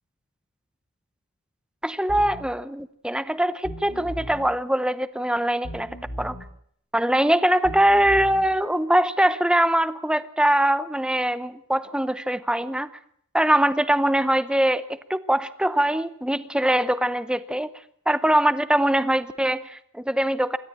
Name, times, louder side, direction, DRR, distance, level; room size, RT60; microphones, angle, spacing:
voice 1, 1.8-6.3 6.9-12.9 13.3-17.7 18.1-20.6, right 1 dB, 5° right, 14 dB, 0.8 m, -22 dB
sound 1, 2.1-2.4 3.6-4.4 5.6-6.4 7.6-8.4, equal, 85° left, 6.9 m, -36 dB
26.5 x 13.0 x 8.7 m, 0.69 s
head